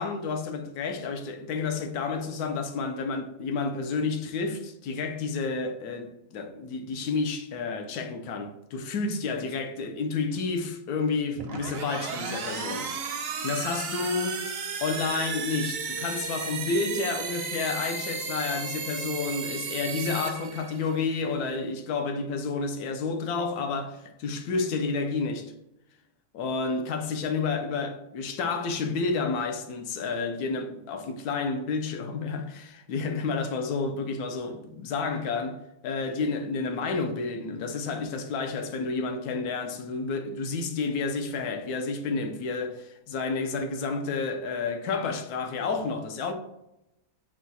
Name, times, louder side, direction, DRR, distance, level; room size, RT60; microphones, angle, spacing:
voice 1, 0.0-12.9 13.4-14.4 14.8-25.5 26.3-35.6 35.8-46.3, left 4 dB, 85° left, 1.2 m, -30 dB
sound 1, 11.3-21.1, right 5 dB, 60° right, 0.6 m, -34 dB
5.9 x 2.3 x 4.0 m
omnidirectional pair, 1.6 m